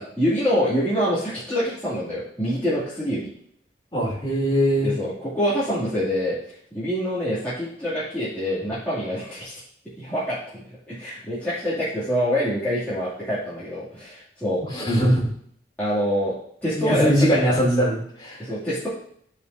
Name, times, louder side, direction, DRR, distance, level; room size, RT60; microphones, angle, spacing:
voice 1, 0.0-3.3 4.8-6.4 6.7-9.6 10.0-10.6 10.9-14.6 15.8-16.4 16.6-17.4 18.4-18.9, equal, 10° left, -12 dB, 2.5 m, -25 dB
voice 2, 3.9-4.9 14.7-15.3 16.7-18.4, equal, 25° left, -5 dB, 3.0 m, -21 dB
13.0 x 5.1 x 2.7 m, 0.66 s
head